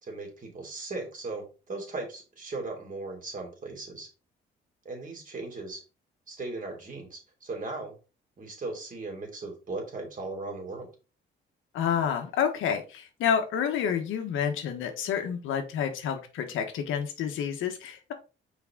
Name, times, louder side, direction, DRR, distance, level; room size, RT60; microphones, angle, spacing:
voice 1, 0.0-4.1 4.8-5.8 6.3-8.0 8.4-10.9, right 3 dB, 40° right, 2 dB, 3.1 m, -37 dB
voice 2, 11.7-18.1, left 8 dB, 85° left, 5 dB, 1.3 m, -29 dB
6.1 x 4.7 x 3.7 m, 0.32 s
cardioid pair, 90°, 20 cm